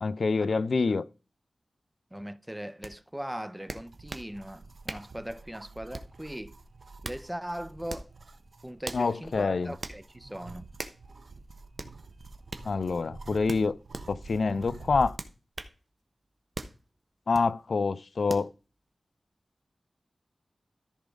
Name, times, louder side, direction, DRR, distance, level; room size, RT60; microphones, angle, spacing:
voice 1, 0.0-1.0 8.9-9.7 12.6-13.7 14.1-15.1 17.3-18.5, left 4 dB, 70° left, 0.4 m, -26 dB
voice 2, 2.1-6.5 7.0-8.1 8.6-10.6, equal, 10° right, 0.5 m, -39 dB
sound 1, 2.8-2.9 3.7-4.3 4.9-5.1 5.9-6.2 6.8-7.2 7.9-8.1 8.8-9.1 9.8-10.0 10.8-11.0 11.8-11.9 12.5-12.7 13.5-14.1 15.2-15.8 16.5-16.8 17.3-17.5 18.3-18.5, right 2 dB, 40° right, 0.9 m, -39 dB
sound 2, 3.9-15.2, right 3 dB, 60° right, 0.6 m, -48 dB
13.5 x 4.9 x 3.8 m
wide cardioid pair, 90°, 0 cm